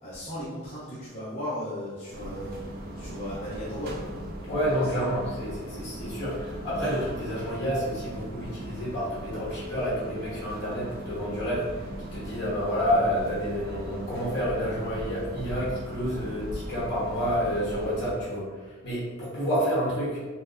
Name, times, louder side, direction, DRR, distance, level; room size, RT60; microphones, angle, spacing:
voice 1, 0.0-2.5 3.0-4.0 4.7-5.1, equal, 30° left, -12 dB, 0.7 m, -36 dB
sound 1, 2.1-18.2, right 1 dB, 45° right, 0.4 m, -38 dB
voice 2, 4.4-11.7 12.1-20.2, equal, 50° left, -7 dB, 1.3 m, -29 dB
4.4 x 2.0 x 2.5 m, 1.3 s
head